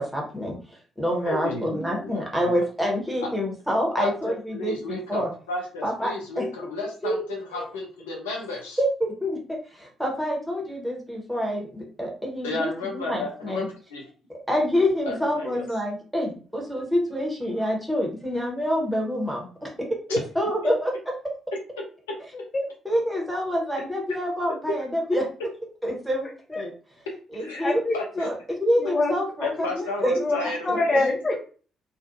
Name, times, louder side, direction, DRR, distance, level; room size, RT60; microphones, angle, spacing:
voice 1, 0.0-5.3 5.8-6.5 6.8-7.2 7.6-7.7 8.8-13.7 14.5-19.9 20.3-20.9 22.8-25.3 25.8-26.7 27.3-27.8 28.2-28.3 28.6-30.8, equal, ahead, -2 dB, 1.0 m, -27 dB
voice 2, 1.2-2.5 3.2-3.3 4.0-8.8 12.4-14.0 15.1-15.7 20.1-20.2 22.1-22.2 27.3-27.7 27.9-28.3 29.4-31.0 31.3-31.4, left 2 dB, 75° left, 0 dB, 0.4 m, -33 dB
voice 3, 22.3-22.7 26.5-26.6 27.6-28.2 28.8-29.2 30.2-30.4 30.6-31.3, left 2 dB, 30° left, 0 dB, 0.6 m, -25 dB
2.4 x 2.1 x 2.6 m, 0.40 s
figure-of-eight pair, 45°, 0 cm